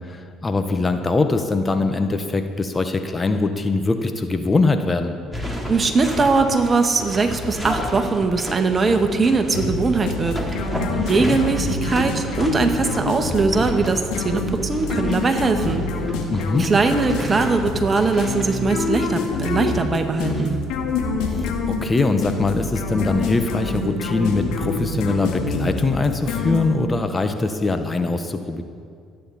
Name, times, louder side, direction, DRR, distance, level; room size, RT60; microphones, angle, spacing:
voice 1, 0.0-5.1 10.9-11.4 16.3-16.7 21.3-28.6, left 3 dB, 25° left, 7 dB, 1.3 m, -22 dB
sound 1, 5.3-20.6, left 1 dB, 5° left, 3.7 m, -33 dB
voice 2, 5.7-10.4 11.1-15.8 16.6-20.6, right 4 dB, 30° right, 6 dB, 1.8 m, -20 dB
sound 2, 9.5-27.0, left 3 dB, 70° left, 2.3 m, -26 dB
26.5 x 9.4 x 4.3 m, 2.2 s
hypercardioid pair, 60°, 0 cm